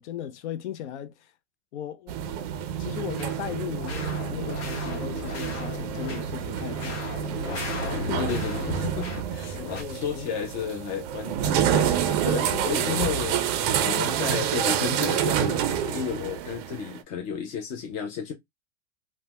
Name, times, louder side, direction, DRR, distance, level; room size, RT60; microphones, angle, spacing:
voice 1, 0.0-1.3 1.7-2.1 2.8-7.2 7.9-8.4 9.5-10.4 12.5-12.9, left 10 dB, 75° left, 0.5 m, -37 dB
sound 1, 2.1-17.0, right 9 dB, 35° right, 0.4 m, -28 dB
sound 2, 3.2-3.4 3.7-6.2 6.6-9.2 9.5-9.8, left 4 dB, 60° left, 1.1 m, -37 dB
voice 2, 8.2-18.3, left 7 dB, 30° left, 0.4 m, -33 dB
3.2 x 2.1 x 2.8 m
supercardioid pair, 150°, 35 cm